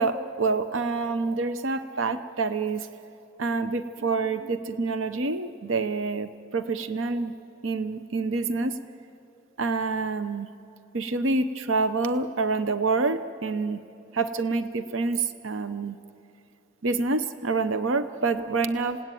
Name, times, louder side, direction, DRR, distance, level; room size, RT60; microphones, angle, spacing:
voice 1, 0.0-2.9 3.4-7.3 7.6-8.8 9.6-10.5 10.9-13.8 14.1-16.0 16.8-19.0, right 3 dB, 90° right, 11 dB, 0.8 m, -27 dB
28.0 x 18.0 x 9.2 m, 2.9 s
head